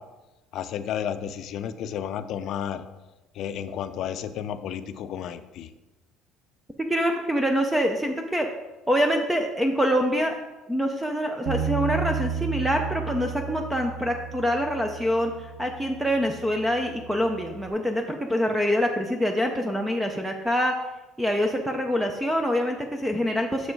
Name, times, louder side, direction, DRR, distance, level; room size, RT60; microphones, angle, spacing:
voice 1, 0.5-2.8 3.3-5.7, left 9 dB, 55° left, 11 dB, 0.5 m, -32 dB
voice 2, 6.9-8.5 8.9-10.4 10.7-20.7 21.2-23.7, equal, 5° right, 4 dB, 0.5 m, -25 dB
Bass guitar, 11.5-17.7, right 7 dB, 80° right, 0.7 m, -33 dB
6.3 x 5.3 x 4.6 m, 1.1 s
cardioid pair, 145°, 0 cm